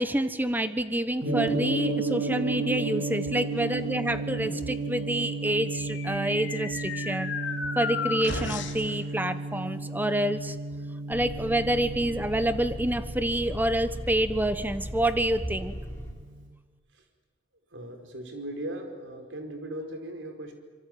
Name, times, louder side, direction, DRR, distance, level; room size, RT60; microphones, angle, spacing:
voice 1, 0.0-7.3 7.7-10.6 11.1-15.7, right 1 dB, 10° right, 11 dB, 1.3 m, -27 dB
Gong, 1.2-15.4, right 3 dB, 90° right, 7.2 m, -33 dB
sound 1, 5.4-8.9, left 5 dB, 70° left, 2.9 m, -34 dB
sound 2, 11.1-16.1, equal, 15° left, 4.8 m, -38 dB
voice 2, 17.7-20.5, right 1 dB, 70° right, 5 dB, 4.8 m, -38 dB
25.5 x 24.0 x 9.5 m, 1.5 s
head